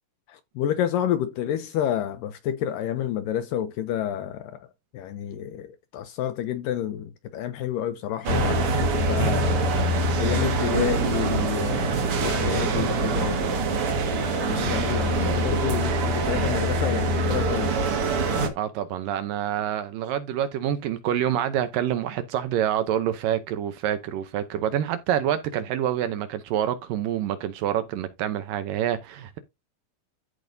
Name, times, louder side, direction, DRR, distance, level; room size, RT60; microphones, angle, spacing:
voice 1, 0.3-4.6 4.9-9.7 10.1-13.6 14.3-17.8, left 10 dB, 80° left, 2.0 m, -29 dB
sound 1, 8.2-18.5, right 2 dB, 50° right, 1.7 m, -24 dB
voice 2, 18.6-29.4, right 10 dB, 75° right, 2.1 m, -27 dB
14.5 x 5.2 x 2.6 m
omnidirectional pair, 4.5 m